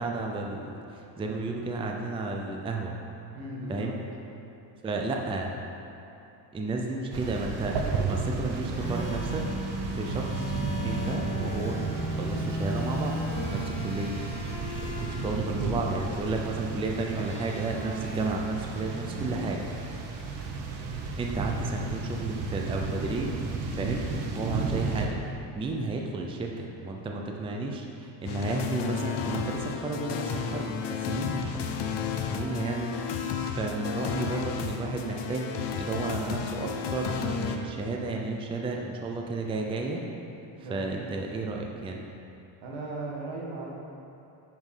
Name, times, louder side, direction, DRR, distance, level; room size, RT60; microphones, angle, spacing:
voice 1, 0.0-2.9 3.7-3.9 4.8-5.5 6.5-9.4 9.8-10.6 10.8-11.8 12.1-13.2 13.5-14.2 15.0-19.6 21.2-23.3 23.7-24.0 24.4-25.2 25.5-31.8 32.3-32.9 33.5-40.0 40.6-42.0, right 3 dB, 10° right, 0 dB, 0.4 m, -32 dB
voice 2, 3.3-3.9 19.1-19.4 40.6-41.1 42.6-43.7, right 2 dB, 80° right, -2 dB, 1.9 m, -37 dB
sound 1, 7.1-25.1, right 4 dB, 55° right, 1.1 m, -33 dB
sound 2, 8.7-15.3 17.1-19.5, equal, 15° left, 2.1 m, -36 dB
sound 3, 28.2-37.6, left 6 dB, 60° left, 0.8 m, -32 dB
9.3 x 5.1 x 5.6 m, 2.8 s
cardioid pair, 155°, 47 cm